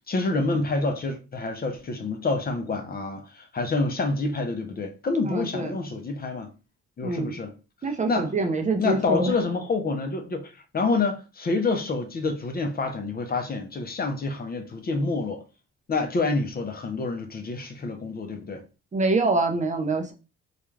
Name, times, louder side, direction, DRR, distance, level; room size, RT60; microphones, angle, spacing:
voice 1, 0.1-6.5 7.0-7.5 8.1-8.3 8.8-15.4 15.9-18.6, left 3 dB, 30° left, 0.5 m, -27 dB
voice 2, 5.3-5.7 7.0-7.4 7.8-9.3 18.9-20.1, right 3 dB, 25° right, 0.5 m, -25 dB
2.3 x 2.2 x 3.1 m
cardioid pair, 90°, 30 cm